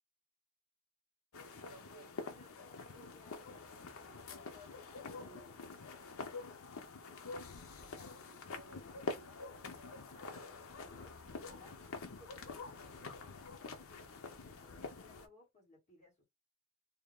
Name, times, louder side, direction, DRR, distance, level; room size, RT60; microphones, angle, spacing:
sound 1, 1.3-15.3, left 3 dB, 65° left, 0.6 m, -47 dB
voice 1, 1.4-5.6 7.8-11.8 12.2-16.3, left 1 dB, 35° left, 1.7 m, -61 dB
3.5 x 2.3 x 3.5 m
head